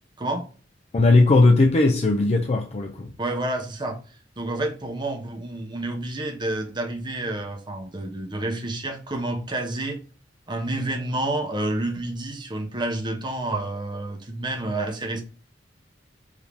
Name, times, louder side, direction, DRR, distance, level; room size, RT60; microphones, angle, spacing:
voice 1, 0.9-3.1, left 2 dB, 35° left, 0.4 m, -18 dB
voice 2, 3.2-4.0 4.4-10.0 10.5-15.2, right 2 dB, 25° right, 0.8 m, -29 dB
4.9 x 2.7 x 3.4 m
head